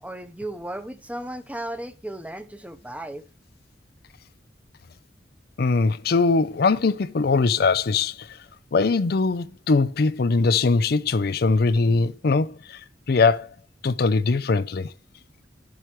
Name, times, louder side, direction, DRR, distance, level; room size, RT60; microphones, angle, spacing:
voice 1, 0.0-3.2, right 1 dB, 10° right, 0.9 m, -35 dB
voice 2, 5.6-8.3 8.7-12.8 13.1-13.5 13.8-14.9, left 4 dB, 55° left, 0.5 m, -21 dB
11.5 x 7.7 x 3.1 m
head